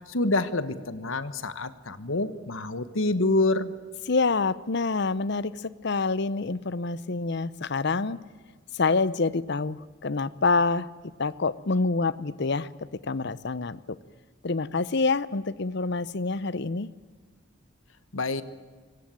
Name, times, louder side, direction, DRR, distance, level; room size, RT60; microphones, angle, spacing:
voice 1, 0.1-3.7 18.1-18.4, left 2 dB, 90° left, 13 dB, 1.4 m, -27 dB
voice 2, 4.1-8.2 8.7-10.9 11.2-12.7 13.1-14.0 14.4-16.9, left 3 dB, 60° left, 18 dB, 0.7 m, -27 dB
23.5 x 18.0 x 9.0 m, 1.5 s
head